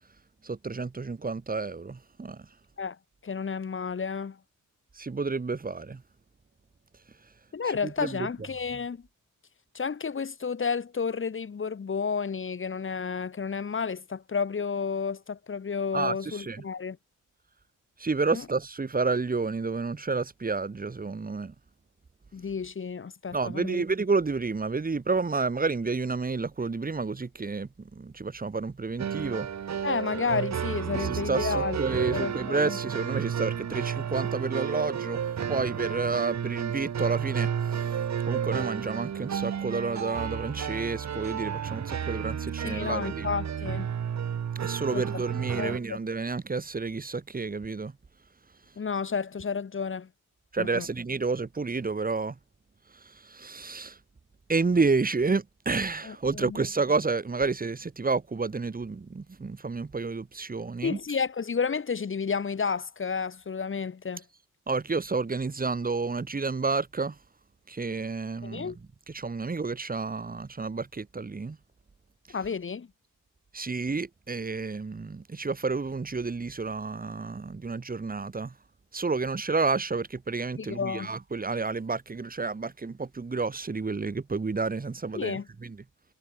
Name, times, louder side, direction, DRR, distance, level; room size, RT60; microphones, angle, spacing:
voice 1, 0.4-2.5 4.9-6.0 7.8-8.3 15.9-16.6 18.0-21.5 23.3-29.5 31.0-37.9 38.3-43.3 44.5-47.9 50.5-52.3 53.0-54.0 54.5-61.0 64.7-67.2 67.7-68.7 69.1-71.6 73.5-78.5 78.9-85.8, right 4 dB, 25° right, 3.2 m, -30 dB
voice 2, 3.2-4.4 7.5-9.0 9.7-17.0 18.3-18.4 22.3-23.8 29.8-32.8 42.6-43.9 44.9-45.2 45.6-45.8 48.8-50.1 50.6-50.9 56.0-56.6 60.8-64.2 68.4-68.8 72.3-72.9 80.6-81.1 85.1-85.5, left 5 dB, 40° left, 2.2 m, -31 dB
sound 1, 29.0-45.8, right 8 dB, 55° right, 1.8 m, -32 dB
wide cardioid pair, 165°, 32 cm